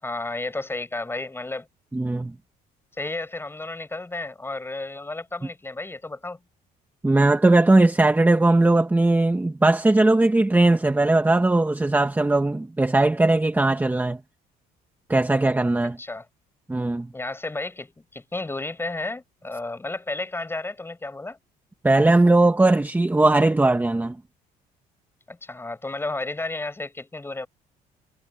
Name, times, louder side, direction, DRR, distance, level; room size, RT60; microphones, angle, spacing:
voice 1, 0.0-1.7 3.0-6.4 16.0-16.3 17.1-21.4 25.3-27.5, left 2 dB, 15° left, 5.7 m, -32 dB
voice 2, 1.9-2.3 7.0-14.2 15.1-16.0 16.7-17.1 21.8-24.1, right 2 dB, 10° right, 1.4 m, -19 dB
cardioid pair, 110°, 17 cm